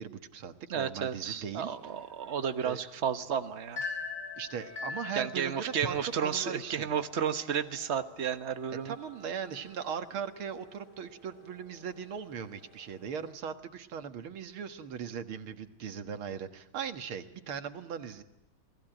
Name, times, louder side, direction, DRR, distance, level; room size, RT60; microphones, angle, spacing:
voice 1, 0.0-1.8 2.6-2.8 4.4-7.0 8.8-18.2, right 7 dB, 80° right, 8 dB, 2.5 m, -39 dB
voice 2, 0.7-3.8 5.1-8.9, right 8 dB, 35° right, 9 dB, 1.3 m, -32 dB
sound 1, 1.1-13.3, left 4 dB, 35° left, 6.2 m, -46 dB
28.5 x 20.0 x 9.0 m, 0.93 s
omnidirectional pair, 2.3 m